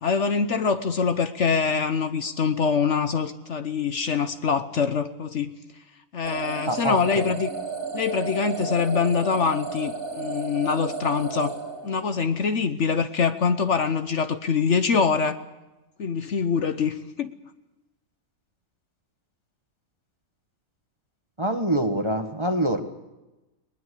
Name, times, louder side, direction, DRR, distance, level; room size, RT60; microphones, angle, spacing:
voice 1, 0.0-5.5 6.1-7.5 7.9-11.5 11.8-15.4 16.0-17.3, left 5 dB, 60° left, 10 dB, 1.2 m, -24 dB
sound 1, 6.2-12.4, right 4 dB, 75° right, 3.5 m, -33 dB
voice 2, 6.7-7.2 21.4-22.8, right 1 dB, 20° right, 6 dB, 1.5 m, -25 dB
21.0 x 20.5 x 8.3 m, 1.0 s
omnidirectional pair, 1.5 m